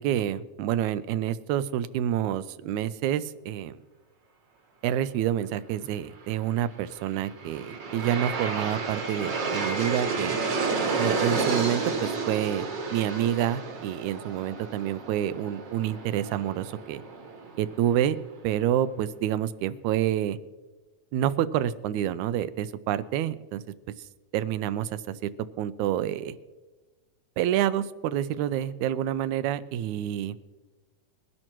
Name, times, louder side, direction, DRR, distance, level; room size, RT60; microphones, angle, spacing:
voice 1, 0.0-3.8 4.8-10.4 11.0-17.0 17.6-18.2 18.4-20.4 21.1-23.6 24.3-26.4 27.4-30.4, right 11 dB, 80° right, 15 dB, 1.9 m, -28 dB
Aircraft, 7.0-18.0, right 4 dB, 50° right, 1.6 m, -31 dB
22.0 x 11.0 x 3.0 m, 1.3 s
omnidirectional pair, 3.4 m